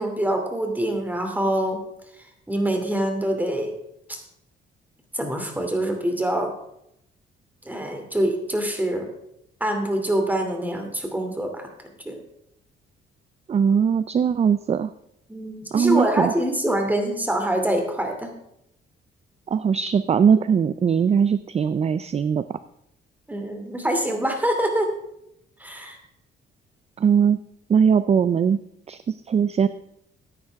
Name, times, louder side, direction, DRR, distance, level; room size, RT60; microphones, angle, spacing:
voice 1, 0.0-1.8 2.5-3.7 4.1-4.2 5.1-6.5 7.6-9.1 9.6-11.7 12.0-12.2 15.3-18.4 23.3-24.9 25.6-26.0, right 1 dB, 10° right, 4 dB, 2.7 m, -25 dB
voice 2, 13.5-14.9 15.7-16.3 19.5-22.6 27.0-27.4 27.7-28.6 28.9-29.7, right 7 dB, 30° right, 14 dB, 0.4 m, -20 dB
14.5 x 9.6 x 3.5 m, 0.78 s
cardioid pair, 90°, 20 cm